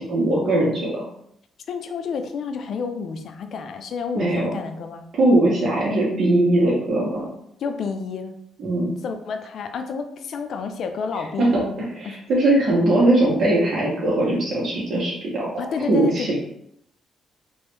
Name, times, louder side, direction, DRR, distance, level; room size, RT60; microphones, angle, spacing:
voice 1, 0.1-1.0 4.1-4.6 5.1-7.3 8.6-8.9 11.4-11.6 11.9-16.4, right 1 dB, 55° right, -5 dB, 1.1 m, -20 dB
voice 2, 1.7-5.1 7.6-8.4 9.0-12.2 15.6-16.4, left 5 dB, 65° left, 7 dB, 0.4 m, -30 dB
3.0 x 2.6 x 3.3 m, 0.72 s
cardioid pair, 90°, 0 cm